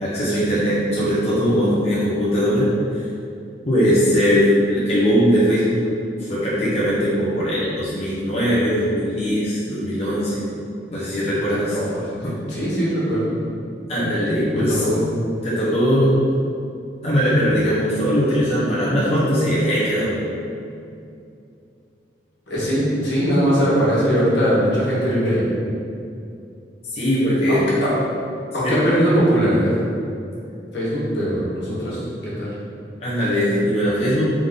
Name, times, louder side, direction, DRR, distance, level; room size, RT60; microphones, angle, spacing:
voice 1, 0.0-2.7 3.6-5.8 6.2-10.4 10.9-11.7 13.9-14.8 15.4-16.1 17.0-20.2 26.9-27.6 28.6-28.8 33.0-34.3, equal, 35° left, -10 dB, 0.9 m, -20 dB
voice 2, 11.3-13.3 14.5-15.0 22.5-25.5 27.5-27.9 28.5-29.7 30.7-32.5, equal, 75° left, -8 dB, 1.5 m, -21 dB
3.7 x 3.6 x 3.7 m, 2.6 s
head